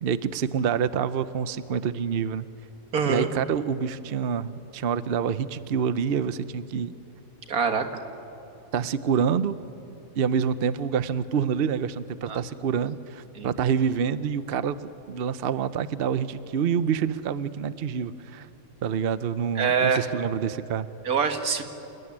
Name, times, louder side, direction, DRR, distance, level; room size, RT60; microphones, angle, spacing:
voice 1, 0.0-2.5 3.1-6.9 8.7-9.6 10.1-18.5 18.8-20.9, right 7 dB, 50° right, 13 dB, 0.8 m, -27 dB
voice 2, 2.9-3.3 7.5-7.9 12.3-12.4 13.4-13.5 19.6-20.1 21.1-21.6, right 6 dB, 90° right, 6 dB, 2.1 m, -24 dB
28.5 x 20.5 x 9.9 m, 2.9 s
omnidirectional pair, 1.5 m